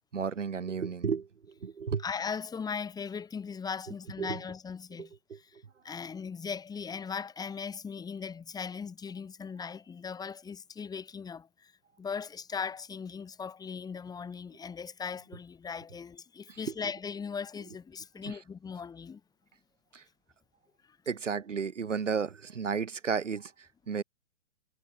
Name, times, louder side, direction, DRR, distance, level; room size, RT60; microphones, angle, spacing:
voice 1, 0.1-1.3 1.6-2.0 4.2-4.4 5.0-5.4 16.6-16.7 18.3-18.4 19.9-20.0 21.1-23.5 23.9-24.0, right 6 dB, 85° right, 6.6 m, -32 dB
voice 2, 2.0-5.6 5.8-11.7 12.0-19.2, left 6 dB, 10° left, 5.9 m, -38 dB
hypercardioid pair, 145°, 36 cm